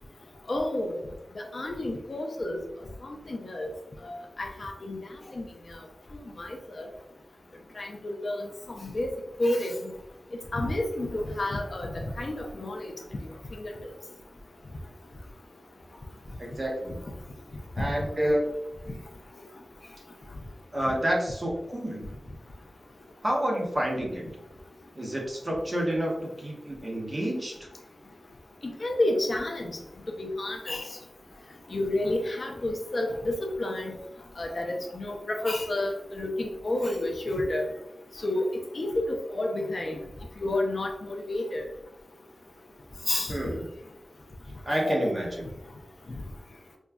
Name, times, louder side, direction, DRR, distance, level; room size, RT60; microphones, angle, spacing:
voice 1, 0.5-1.0 1.5-2.6 3.0-3.7 4.0-5.0 5.3-5.4 6.4-6.5 6.8-6.9 7.8-8.4 8.8-9.1 9.4-9.9 10.5-12.8 13.6-13.7 17.8-17.9 28.6-29.7 30.2-30.8 31.7-33.9 34.4-37.7 38.2-38.5 38.7-40.0 40.4-41.6 43.1-43.3 44.7-45.1, left 1 dB, 55° left, 2 dB, 0.5 m, -30 dB
voice 2, 16.4-17.0 17.7-18.5 20.7-22.1 23.2-24.3 24.9-27.7 43.3-43.7 44.6-45.5, equal, 30° right, -2 dB, 1.0 m, -29 dB
5.1 x 2.3 x 2.2 m, 0.87 s
wide cardioid pair, 85°, 0 cm